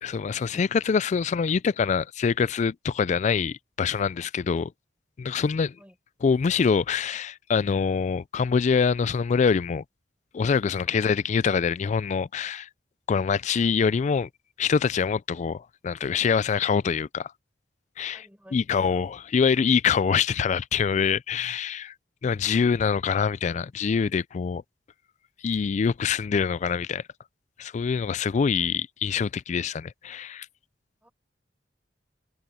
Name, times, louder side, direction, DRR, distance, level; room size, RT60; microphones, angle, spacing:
voice 1, 0.0-4.7 5.2-5.7 6.2-9.8 10.3-12.7 13.1-14.3 14.6-17.3 18.0-18.2 18.5-21.9 22.2-24.6 25.4-27.0 27.6-30.5, left 6 dB, 40° left, 0.3 m, -25 dB
voice 2, 5.4-6.0 10.8-11.1 18.1-18.9 27.9-28.1 31.0-31.1, equal, 10° right, 5.8 m, -54 dB
head